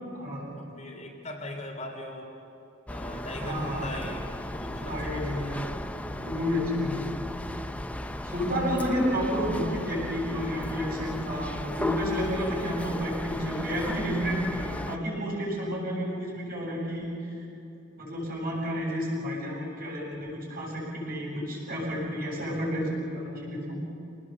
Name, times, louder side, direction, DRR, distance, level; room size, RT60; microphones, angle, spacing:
voice 1, 0.6-2.3 2.9-5.8, left 1 dB, 40° left, 1 dB, 3.3 m, -40 dB
sound 1, 2.9-15.0, left 1 dB, 5° left, 0.6 m, -36 dB
voice 2, 3.4-3.9 4.9-5.7 6.2-7.1 8.2-17.1 18.0-23.8, equal, 50° right, -3 dB, 8.0 m, -30 dB
27.0 x 19.5 x 7.4 m, 2.7 s
head